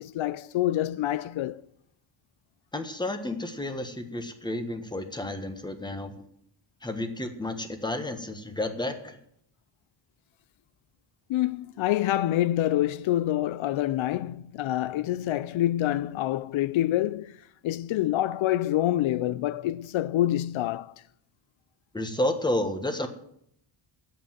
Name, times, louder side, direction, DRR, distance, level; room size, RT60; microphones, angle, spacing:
voice 1, 0.0-1.6 11.3-17.4 17.6-20.9, left 13 dB, 80° left, 0.5 m, -26 dB
voice 2, 2.7-6.3 6.8-9.2 21.9-23.1, left 1 dB, 10° left, 1.3 m, -31 dB
10.5 x 8.0 x 7.3 m
wide cardioid pair, 140°, 47 cm